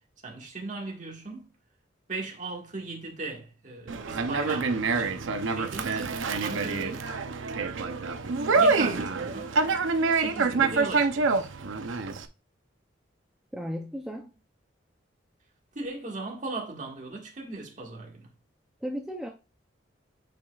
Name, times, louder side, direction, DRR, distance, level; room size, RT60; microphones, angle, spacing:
voice 1, 0.2-1.5 2.1-6.1 6.4-7.2 8.5-9.5 10.2-11.5 15.7-18.2, right 3 dB, 40° right, 1.7 m, -38 dB
Conversation, 3.9-12.3, right 4 dB, 85° right, 0.6 m, -26 dB
voice 2, 13.5-14.3 18.8-19.3, equal, 5° right, 0.5 m, -35 dB
8.7 x 5.1 x 2.4 m
head